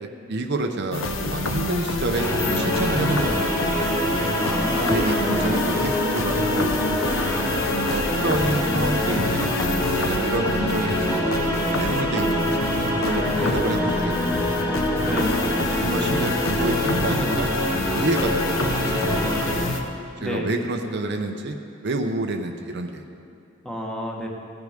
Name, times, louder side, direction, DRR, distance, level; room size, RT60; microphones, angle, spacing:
voice 1, 0.0-3.8 4.9-6.8 7.9-9.5 9.9-11.3 11.8-12.7 13.0-14.5 15.6-17.5 17.9-19.4 20.2-21.6 21.8-23.0, right 2 dB, 60° right, 5 dB, 0.7 m, -28 dB
sound 1, 0.9-19.8, left 2 dB, 80° left, 1.0 m, -28 dB
sound 2, 2.1-19.5, left 1 dB, 20° left, 2.2 m, -25 dB
voice 2, 4.4-5.2 13.4-13.7 15.0-15.3 20.2-20.5 23.6-24.3, equal, 5° left, -1 dB, 1.3 m, -31 dB
15.5 x 9.6 x 5.1 m, 2.6 s
head